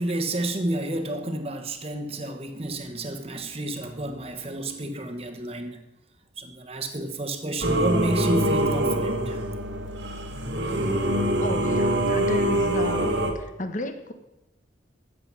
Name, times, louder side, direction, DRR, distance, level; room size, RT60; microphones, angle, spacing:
voice 1, 0.0-5.8 6.4-9.4, right 1 dB, 30° right, 6 dB, 1.2 m, -30 dB
Singing / Musical instrument, 7.6-13.3, right 1 dB, 70° right, 1.7 m, -24 dB
voice 2, 11.4-14.1, left 2 dB, 40° left, 8 dB, 1.1 m, -33 dB
13.5 x 7.9 x 6.2 m, 0.93 s
head